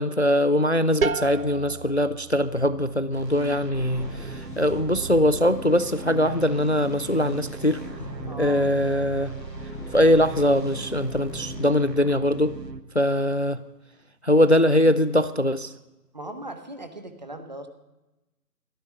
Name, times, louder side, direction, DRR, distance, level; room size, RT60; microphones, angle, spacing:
voice 1, 0.0-7.8 8.4-9.3 9.9-12.6 12.9-13.6 14.2-15.7, left 1 dB, 45° left, 15 dB, 0.4 m, -22 dB
sound 1, 1.0-6.5, right 4 dB, 55° right, 0.8 m, -35 dB
sound 2, 3.1-12.8, right 4 dB, 85° right, 1.3 m, -39 dB
sound 3, 3.7-11.6, left 2 dB, 5° left, 3.7 m, -40 dB
voice 2, 8.3-8.6 16.1-17.7, right 1 dB, 25° right, 8 dB, 1.1 m, -38 dB
17.5 x 13.5 x 5.8 m, 1.0 s
figure-of-eight pair, 155°, 48 cm